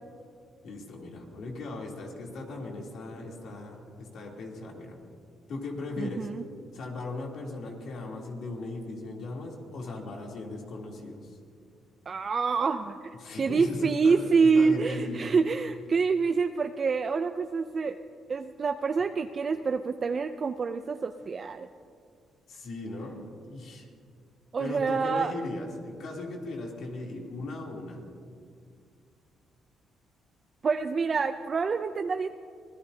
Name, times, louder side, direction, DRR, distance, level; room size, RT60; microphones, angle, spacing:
voice 1, 0.6-5.0 5.5-6.3 6.7-11.4 13.1-15.3 22.5-23.9 24.6-28.0, left 2 dB, 70° left, -1 dB, 3.1 m, -38 dB
voice 2, 6.0-6.4 12.1-13.0 13.4-18.0 18.3-21.7 24.5-25.3 30.6-32.3, right 5 dB, 40° right, 8 dB, 0.5 m, -26 dB
25.0 x 17.5 x 2.8 m, 2.2 s
cardioid pair, 90°, 0 cm